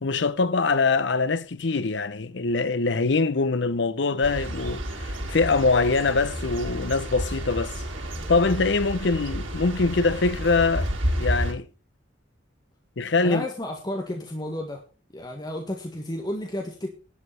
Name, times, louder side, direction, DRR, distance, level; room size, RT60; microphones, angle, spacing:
voice 1, 0.0-7.7 8.3-10.9 11.2-11.7 13.0-13.4, left 3 dB, 65° left, 0.7 m, -23 dB
sound 1, 4.2-11.5, equal, 85° right, 3.6 m, -30 dB
voice 2, 13.2-14.8 15.1-16.9, left 1 dB, 20° left, 1.7 m, -32 dB
11.5 x 6.8 x 6.6 m
head